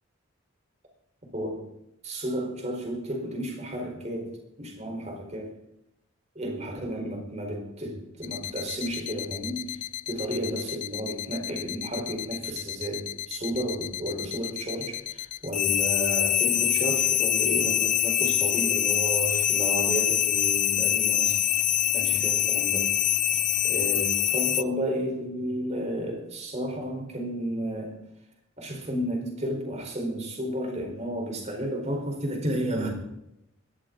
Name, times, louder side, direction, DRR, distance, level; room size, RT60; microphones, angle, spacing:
voice 1, 1.3-1.6 2.0-4.3 4.6-5.5 6.3-9.8 10.1-21.6 21.9-22.9 23.6-28.0 28.6-32.9, right 1 dB, 30° right, 2 dB, 4.6 m, -32 dB
sound 1, 8.2-24.6, left 11 dB, 35° left, 0.5 m, -25 dB
21.5 x 15.0 x 4.0 m, 0.85 s
head